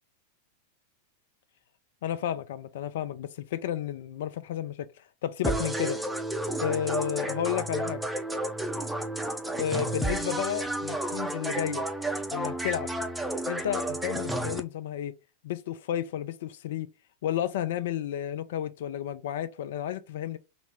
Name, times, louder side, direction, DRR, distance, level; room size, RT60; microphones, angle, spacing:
voice 1, 2.0-4.9 5.2-6.0 6.6-8.0 9.6-11.8 12.3-12.9 13.5-15.1 15.4-16.9 17.2-20.4, left 10 dB, 55° left, 0.4 m, -32 dB
sound 1, 5.4-14.6, right 1 dB, 5° right, 0.5 m, -31 dB
4.0 x 2.0 x 2.9 m
figure-of-eight pair, 90°, 0 cm